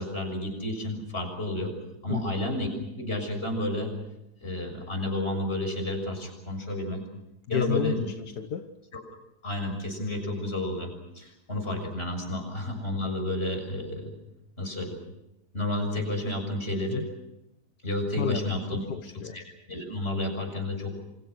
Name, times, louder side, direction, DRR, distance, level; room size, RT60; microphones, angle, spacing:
voice 1, 0.0-1.7 2.0-2.7 3.0-3.9 4.4-7.0 7.5-8.1 8.9-9.0 9.4-14.1 14.6-15.0 15.5-17.0 17.8-18.8 19.3-20.9, left 1 dB, 40° left, 5 dB, 6.8 m, -31 dB
voice 2, 7.5-8.7 16.9-17.1 18.2-18.4 18.7-19.4, left 9 dB, 80° left, 7 dB, 1.8 m, -31 dB
29.0 x 26.5 x 6.2 m, 0.89 s
omnidirectional pair, 1.7 m